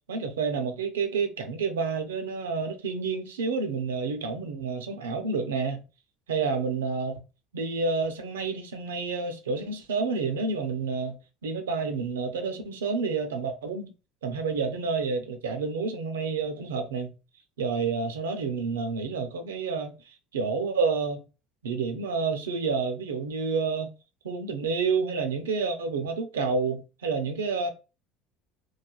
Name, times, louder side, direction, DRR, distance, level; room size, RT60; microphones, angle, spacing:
voice 1, 0.1-5.8 6.3-7.2 7.5-13.9 14.2-17.1 17.6-21.2 21.6-23.9 24.2-27.7, right 4 dB, 85° right, 0.5 m, -29 dB
3.2 x 2.2 x 2.3 m
hypercardioid pair, 75°, 0 cm